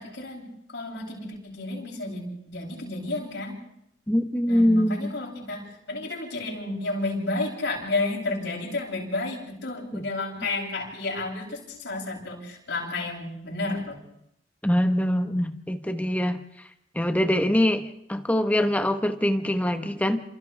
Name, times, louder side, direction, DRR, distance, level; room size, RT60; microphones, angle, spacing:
voice 1, 0.0-3.6 4.5-14.0, left 2 dB, 70° left, -3 dB, 7.9 m, -31 dB
voice 2, 4.1-5.1 9.9-10.0 14.6-16.7 16.9-20.2, equal, 10° left, 7 dB, 1.2 m, -24 dB
29.5 x 28.0 x 3.5 m, 0.76 s
head